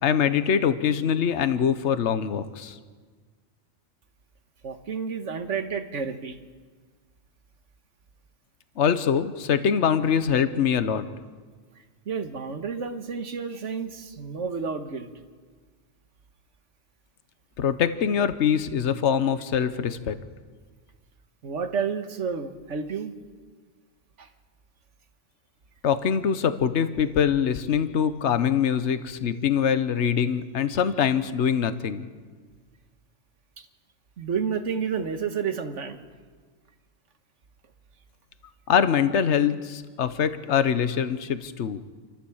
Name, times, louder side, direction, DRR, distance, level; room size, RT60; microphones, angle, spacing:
voice 1, 0.0-2.8 8.8-11.0 17.6-20.2 25.8-32.1 38.7-41.8, left 7 dB, 70° left, 12 dB, 1.2 m, -23 dB
voice 2, 4.6-6.4 12.0-15.1 21.4-23.1 24.2-24.3 33.6-33.7 34.2-36.0, right 6 dB, 80° right, 8 dB, 1.6 m, -30 dB
28.5 x 14.0 x 7.2 m, 1.5 s
omnidirectional pair, 1.2 m